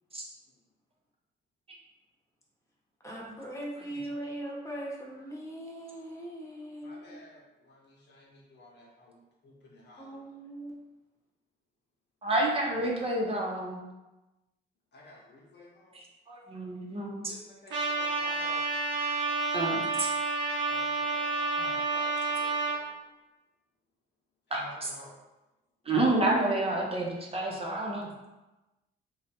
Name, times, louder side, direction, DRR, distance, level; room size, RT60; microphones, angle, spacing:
voice 1, 3.0-7.2 10.0-10.8, right 1 dB, 15° left, -3 dB, 1.1 m, -40 dB
voice 2, 6.8-9.2 9.4-10.2 14.9-16.0 17.3-18.6 20.7-23.0 24.5-25.1, left 1 dB, 60° left, -2 dB, 1.0 m, -52 dB
voice 3, 12.2-13.8 15.9-17.3 19.5-20.1 21.6-21.7 21.9-22.1 24.5-24.9 25.8-28.1, right 2 dB, 30° right, -2 dB, 0.8 m, -29 dB
Trumpet, 17.7-22.8, right 3 dB, 70° right, 0.8 m, -30 dB
3.1 x 2.4 x 4.1 m, 1.0 s
cardioid pair, 90°, 20 cm